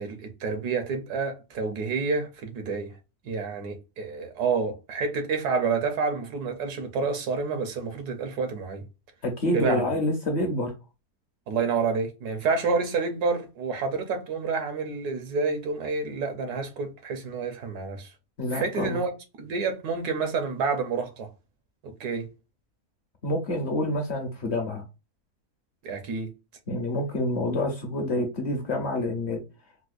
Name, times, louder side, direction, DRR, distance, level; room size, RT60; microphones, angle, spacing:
voice 1, 0.0-3.0 3.2-8.8 9.5-9.8 11.5-18.1 18.5-19.1 19.4-21.3 21.8-22.3 25.8-26.3, right 4 dB, 80° right, 1.3 m, -29 dB
voice 2, 9.2-10.7 18.4-19.0 23.2-24.8 26.7-29.4, left 1 dB, 55° left, 0.8 m, -27 dB
4.3 x 2.2 x 2.4 m
omnidirectional pair, 1.7 m